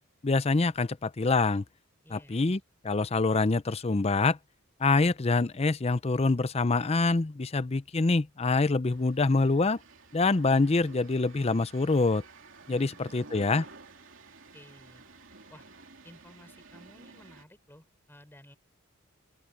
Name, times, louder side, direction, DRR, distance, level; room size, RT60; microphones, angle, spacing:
voice 1, 0.2-1.6 2.1-4.4 4.8-9.8 10.1-12.2 12.7-13.6, left 3 dB, 30° left, 0.6 m, -25 dB
voice 2, 2.0-2.4 12.7-13.4 14.5-15.0 15.5-15.7 16.0-18.6, left 1 dB, 10° left, 3.7 m, -54 dB
sound 1, 8.9-17.5, right 3 dB, 65° right, 3.3 m, -52 dB
open air
head